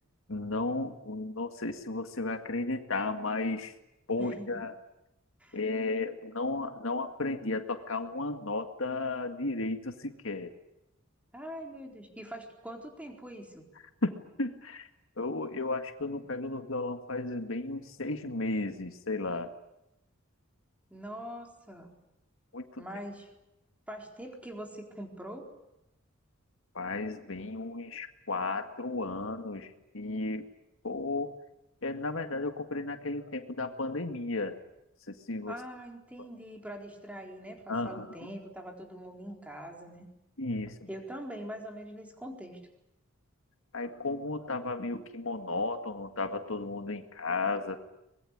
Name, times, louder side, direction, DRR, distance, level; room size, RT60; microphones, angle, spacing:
voice 1, 0.3-3.7 4.1-4.8 5.5-10.5 14.0-14.9 15.2-19.5 22.5-22.8 26.7-30.5 30.8-31.3 31.8-34.6 35.1-35.6 37.7-38.3 40.4-40.9 43.7-47.8, left 3 dB, 65° left, 6 dB, 2.0 m, -34 dB
voice 2, 4.2-4.6 5.4-5.6 11.3-13.6 20.9-21.9 22.8-23.3 23.9-25.5 35.5-40.1 40.9-42.6, equal, 5° right, 2 dB, 4.2 m, -43 dB
24.0 x 21.5 x 10.0 m, 0.87 s
head